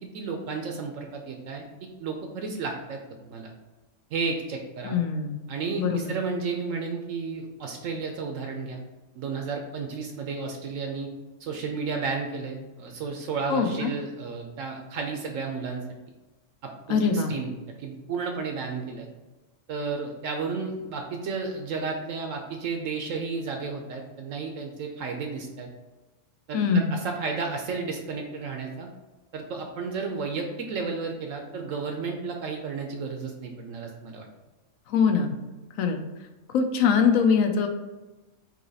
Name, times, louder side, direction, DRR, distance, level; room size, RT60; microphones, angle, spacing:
voice 1, 0.0-3.0 3.2-3.5 4.1-5.0 5.5-8.8 9.1-11.1 11.4-15.8 16.6-17.5 17.8-19.1 19.7-25.7 26.5-28.9 29.3-34.3, right 4 dB, 70° right, 3 dB, 0.9 m, -32 dB
voice 2, 4.8-5.4 5.8-6.1 13.5-13.9 16.9-17.3 26.5-26.9 34.9-35.3 35.8-36.0 36.5-37.7, left 6 dB, 70° left, 5 dB, 1.0 m, -23 dB
3.9 x 2.9 x 3.9 m, 1.1 s
omnidirectional pair, 1.5 m